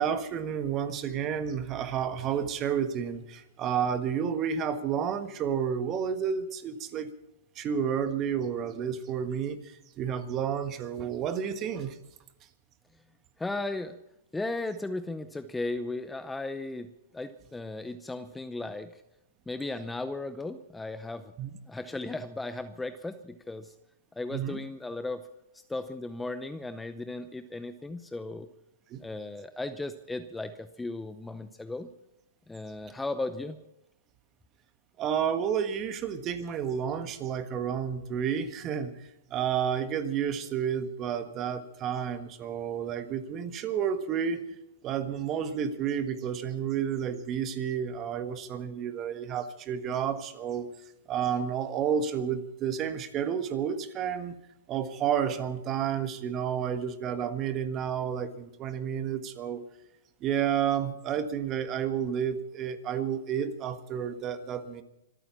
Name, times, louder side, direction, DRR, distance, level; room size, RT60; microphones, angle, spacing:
voice 1, 0.0-7.1 7.5-11.9 21.4-21.5 24.3-24.6 28.9-29.0 35.0-44.4 44.8-50.7 51.1-54.4 54.7-59.6 60.2-64.8, right 8 dB, 30° right, 10 dB, 1.4 m, -31 dB
voice 2, 13.4-14.0 14.3-19.0 19.5-21.3 21.7-23.7 24.2-25.2 25.5-28.5 29.0-31.9 32.5-33.6, left 2 dB, 5° left, 12 dB, 0.7 m, -36 dB
25.0 x 9.1 x 5.9 m, 0.88 s
hypercardioid pair, 140°, 0 cm